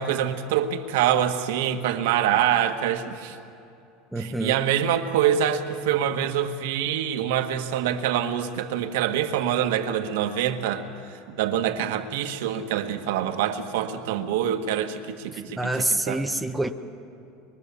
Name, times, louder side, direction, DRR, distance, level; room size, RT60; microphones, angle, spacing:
voice 1, 0.0-3.4 4.2-10.9 11.3-15.6 16.1-16.2, right 10 dB, 75° right, 1.5 m, -25 dB
voice 2, 4.1-4.7 15.3-16.7, right 1 dB, ahead, 0.7 m, -27 dB
25.0 x 22.5 x 6.9 m
cardioid pair, 180°, 0 cm